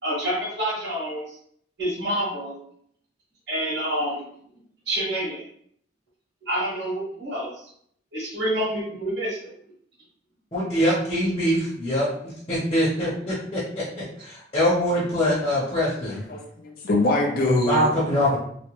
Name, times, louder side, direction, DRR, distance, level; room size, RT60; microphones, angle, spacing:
voice 1, 0.0-1.4 1.8-2.6 3.5-4.2 4.8-5.4 6.4-7.5 8.1-9.5, right 1 dB, 65° right, -9 dB, 1.4 m, -27 dB
voice 2, 10.5-13.6 14.2-16.2 17.4-18.4, equal, 35° left, -10 dB, 0.8 m, -23 dB
voice 3, 16.3-17.9, left 2 dB, 50° left, 0 dB, 0.5 m, -23 dB
3.0 x 2.1 x 3.0 m, 0.66 s
head